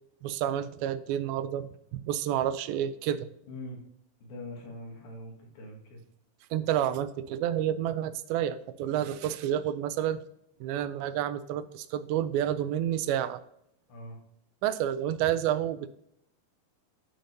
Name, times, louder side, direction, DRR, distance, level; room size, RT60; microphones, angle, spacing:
voice 1, 0.2-3.3 6.5-10.2 10.6-13.4 14.6-15.9, right 11 dB, 85° right, 13 dB, 2.3 m, -29 dB
voice 2, 3.5-3.8 4.2-6.0 8.8-9.0 13.9-14.2, left 1 dB, 75° left, 0 dB, 3.5 m, -43 dB
10.0 x 5.2 x 2.7 m, 0.74 s
omnidirectional pair, 4.3 m